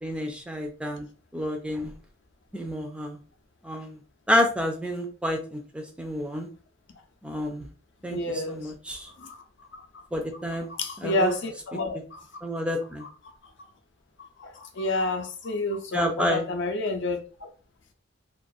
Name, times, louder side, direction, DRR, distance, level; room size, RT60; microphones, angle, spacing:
voice 1, 0.0-1.1 1.3-1.9 2.5-3.2 3.6-4.0 4.3-6.5 7.2-7.7 8.0-9.1 10.1-10.7 11.0-11.3 12.4-13.1 15.9-16.4, left 1 dB, 5° right, 0.4 m, -29 dB
voice 2, 8.1-8.7 9.2-9.4 9.7-10.0 10.7-12.2 13.0-13.1 14.2-17.2, left 2 dB, 65° left, 0.5 m, -30 dB
2.4 x 2.3 x 2.6 m
head